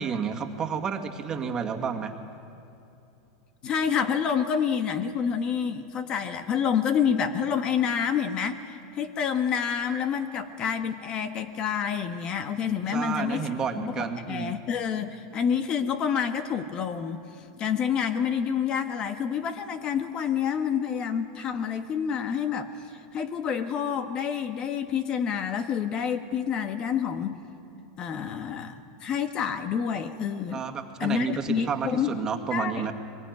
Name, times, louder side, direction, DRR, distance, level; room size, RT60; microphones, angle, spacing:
voice 1, 0.0-2.1 12.9-14.5 30.5-32.9, right 6 dB, 30° right, 3 dB, 2.1 m, -30 dB
voice 2, 3.6-13.5 13.8-17.2 17.6-22.7 23.1-27.4 28.0-30.6 31.0-32.1 32.5-32.9, left 7 dB, 40° left, 8 dB, 1.5 m, -28 dB
23.0 x 21.0 x 9.6 m, 2.8 s
hypercardioid pair, 115°, 2 cm